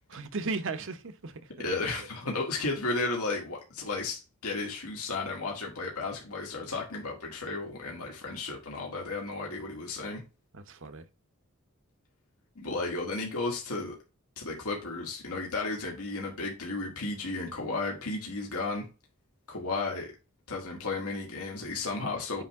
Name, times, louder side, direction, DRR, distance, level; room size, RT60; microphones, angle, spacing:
voice 1, 0.1-1.7 10.7-11.0, right 4 dB, 60° right, 0.9 m, -36 dB
voice 2, 1.6-10.2 12.6-14.0 14.4-18.9 19.5-20.1 20.5-22.4, left 3 dB, 85° left, 2.1 m, -33 dB
9.1 x 3.4 x 3.6 m
head